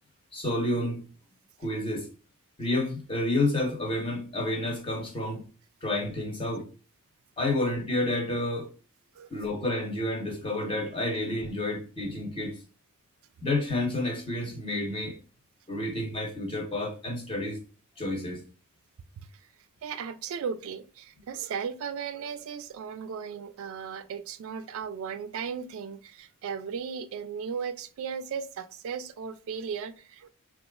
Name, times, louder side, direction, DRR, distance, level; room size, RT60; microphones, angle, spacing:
voice 1, 0.3-1.0 1.6-2.1 2.6-5.4 5.8-6.7 7.4-8.7 9.3-12.6 13.4-15.2 15.7-17.6 18.0-18.4, left 1 dB, 25° left, 0.8 m, -30 dB
voice 2, 19.8-30.3, right 6 dB, 65° right, 0.3 m, -36 dB
4.1 x 2.4 x 2.2 m
head